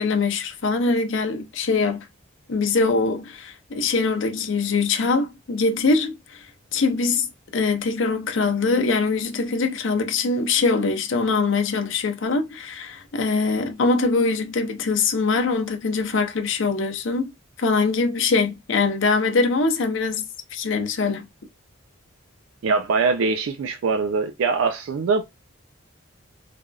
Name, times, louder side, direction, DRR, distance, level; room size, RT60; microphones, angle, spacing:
voice 1, 0.0-2.1 2.5-6.5 6.7-7.3 7.5-17.3 17.6-20.2 20.5-21.3, left 4 dB, 60° left, 0.6 m, -23 dB
voice 2, 22.6-25.2, right 4 dB, 75° right, 0.4 m, -22 dB
3.2 x 2.5 x 2.3 m
head